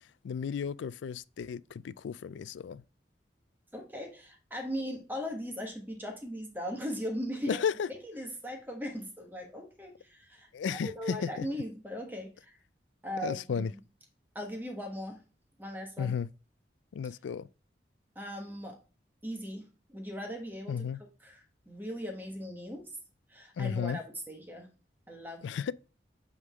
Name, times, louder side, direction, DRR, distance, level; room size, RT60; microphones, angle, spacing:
voice 1, 0.2-2.8 7.5-7.9 10.5-11.5 13.2-13.7 16.0-16.3 16.9-17.5 20.7-21.0 23.6-24.0 25.4-25.7, left 7 dB, 85° left, 0.3 m, -33 dB
voice 2, 3.7-7.6 7.9-12.6 13.0-13.8 14.3-15.2 15.6-16.1 17.0-17.1 18.1-18.8 19.2-20.9 21.2-22.9 23.3-24.7 25.1-25.4, equal, 10° right, 1.3 m, -39 dB
8.0 x 3.7 x 3.6 m
head